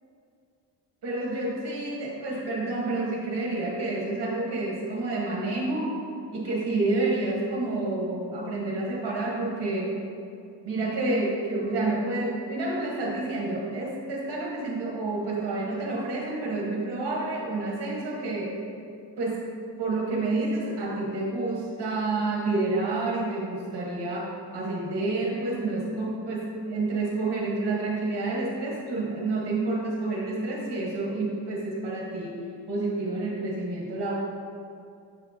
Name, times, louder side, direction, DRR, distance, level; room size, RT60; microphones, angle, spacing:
voice 1, 1.0-6.0 6.3-9.9 10.6-18.6 19.2-19.4 19.8-32.4 32.7-34.1, right 2 dB, 60° right, -3 dB, 1.6 m, -29 dB
7.2 x 6.1 x 3.0 m, 2.4 s
cardioid pair, 90°, 43 cm